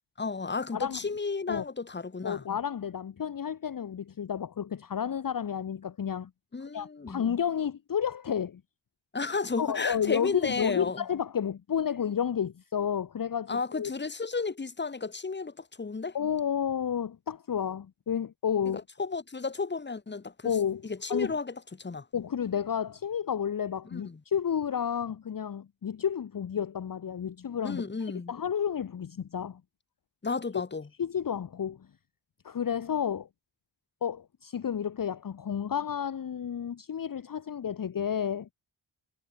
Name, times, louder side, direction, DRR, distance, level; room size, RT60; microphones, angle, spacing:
voice 1, 0.2-2.4 6.5-7.2 9.1-11.0 13.5-16.2 18.6-20.5 20.8-22.1 23.8-24.2 27.6-28.3 30.2-30.9, left 4 dB, 20° left, 1.6 m, -33 dB
voice 2, 2.2-6.3 6.7-8.6 9.6-13.9 16.1-18.8 20.4-21.3 22.1-27.8 28.3-29.6 31.0-31.9 32.4-33.3 34.0-38.5, left 8 dB, 40° left, 1.0 m, -31 dB
wide cardioid pair, 170°, 49 cm